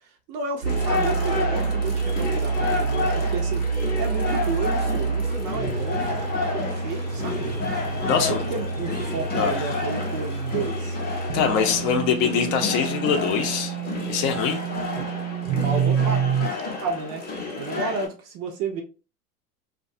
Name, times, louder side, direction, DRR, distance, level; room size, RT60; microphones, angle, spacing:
voice 1, 0.0-3.7 4.0-7.6 8.0-11.0 15.0-15.1 15.4-16.2 16.8-17.3 17.6-18.8, right 5 dB, 35° right, 0.4 m, -32 dB
sound 1, 0.6-16.5, right 5 dB, 90° right, 0.7 m, -27 dB
sound 2, 0.7-18.1, left 4 dB, 20° left, 0.7 m, -30 dB
voice 2, 8.0-8.4 9.3-9.7 11.3-13.7 14.1-14.6, left 7 dB, 55° left, 0.7 m, -23 dB
2.3 x 2.3 x 2.5 m
hypercardioid pair, 95°, 47 cm